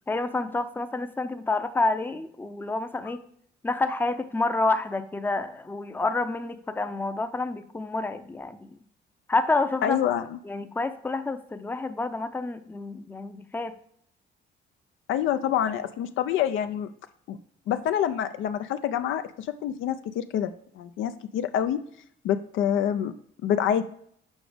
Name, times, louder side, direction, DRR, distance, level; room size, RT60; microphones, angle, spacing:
voice 1, 0.1-3.2 3.6-8.8 9.3-10.0 10.4-13.8, left 2 dB, 10° left, 10 dB, 0.5 m, -28 dB
voice 2, 9.8-10.4 15.1-16.9 17.3-17.4 17.7-21.8 22.2-23.1 23.4-23.8, left 9 dB, 80° left, 9 dB, 0.4 m, -27 dB
7.1 x 5.0 x 3.4 m, 0.66 s
cardioid pair, 90°, 20 cm